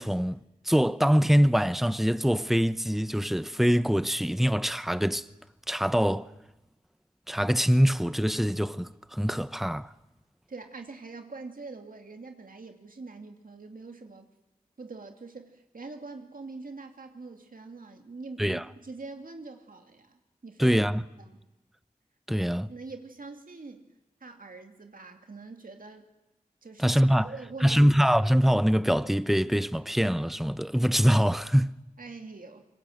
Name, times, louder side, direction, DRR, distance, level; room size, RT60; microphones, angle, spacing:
voice 1, 0.0-5.3 5.7-6.3 7.3-9.9 18.4-18.7 20.6-21.0 22.3-22.7 26.8-27.3 27.6-31.8, equal, ahead, 0.8 m, -24 dB
voice 2, 10.5-14.3 14.8-20.8 21.2-21.4 22.7-23.9 24.2-26.1 26.6-27.0 27.2-27.8 32.0-32.7, right 3 dB, 75° right, 2.6 m, -44 dB
25.5 x 24.5 x 7.9 m
wide cardioid pair, 75°, 14 cm